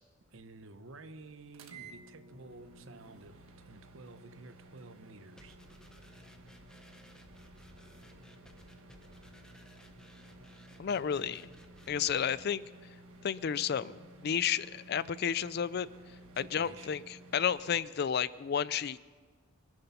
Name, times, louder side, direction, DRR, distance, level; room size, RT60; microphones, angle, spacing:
voice 1, 0.3-5.6 16.3-16.9, right 3 dB, 70° right, 11 dB, 0.9 m, -52 dB
sound 1, 1.5-17.7, right 2 dB, 85° right, 1.5 m, -55 dB
sound 2, 5.4-12.4, equal, 5° left, 0.8 m, -58 dB
voice 2, 10.8-11.5 11.9-12.6 13.2-15.9 16.5-19.0, left 8 dB, 50° left, 18 dB, 0.4 m, -32 dB
25.0 x 9.7 x 5.7 m, 1.5 s
head